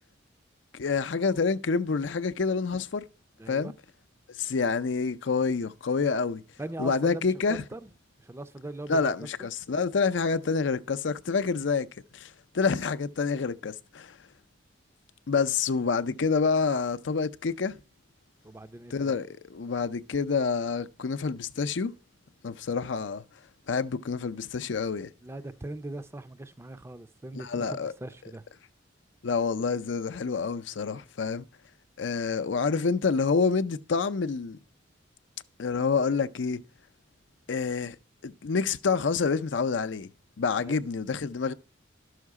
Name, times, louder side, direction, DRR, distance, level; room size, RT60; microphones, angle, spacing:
voice 1, 0.7-3.0 3.5-3.7 4.4-6.4 6.8-7.6 8.9-11.9 12.1-14.2 15.3-17.7 18.9-21.9 22.4-23.2 23.7-25.1 27.3-27.9 29.2-31.4 32.0-34.6 35.6-36.6 37.5-38.0 38.2-40.1 40.4-41.5, left 5 dB, 75° left, 0.5 m, -27 dB
voice 2, 3.4-3.7 6.6-7.9 8.2-9.1 18.4-19.1 25.2-28.4 40.6-40.8, right 1 dB, 15° right, 0.5 m, -40 dB
12.0 x 6.5 x 4.7 m
head